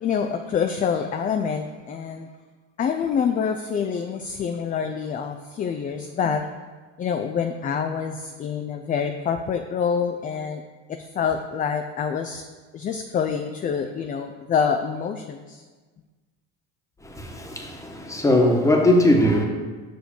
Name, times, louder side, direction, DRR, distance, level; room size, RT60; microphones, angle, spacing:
voice 1, 0.0-2.3 2.8-6.5 7.0-10.6 10.9-12.4 12.7-15.6, left 7 dB, 25° left, 0.4 m, -26 dB
voice 2, 17.0-19.4, left 1 dB, 10° left, 1.2 m, -20 dB
6.2 x 5.1 x 5.1 m
supercardioid pair, 95°, 32 cm